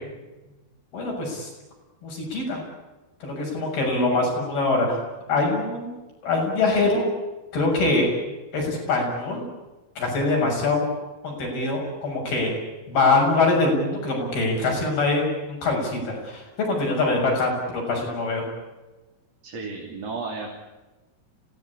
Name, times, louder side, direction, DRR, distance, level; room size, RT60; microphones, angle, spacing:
voice 1, 0.9-1.5 2.0-2.6 3.2-5.0 5.3-6.0 6.2-7.1 7.5-8.1 8.5-9.5 10.0-10.9 11.2-12.5 12.9-18.4, left 3 dB, 85° left, 0 dB, 8.9 m, -23 dB
voice 2, 19.4-20.5, right 4 dB, 45° right, -1 dB, 4.0 m, -33 dB
26.5 x 18.0 x 8.6 m, 1.1 s
omnidirectional pair, 4.3 m